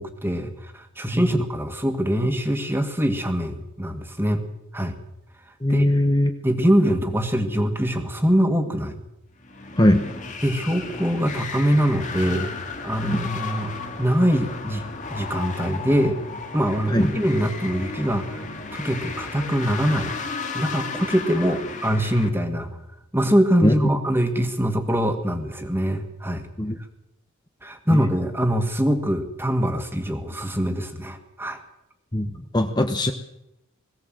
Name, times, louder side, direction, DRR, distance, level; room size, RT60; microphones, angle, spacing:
voice 1, 0.0-4.4 4.7-5.0 5.7-5.9 6.4-9.0 10.4-12.5 12.8-14.8 15.1-16.2 16.5-18.4 18.7-20.1 20.5-22.8 23.1-26.5 27.6-31.6, equal, 10° right, 6 dB, 1.9 m, -23 dB
voice 2, 5.6-6.3 9.8-10.0 13.0-13.2 16.9-17.1 23.6-23.7 26.6-26.8 27.9-28.0 32.1-33.1, left 1 dB, 20° left, 5 dB, 1.0 m, -20 dB
sound 1, 9.4-22.3, left 4 dB, 35° left, 2.1 m, -34 dB
21.0 x 16.5 x 7.8 m, 0.88 s
head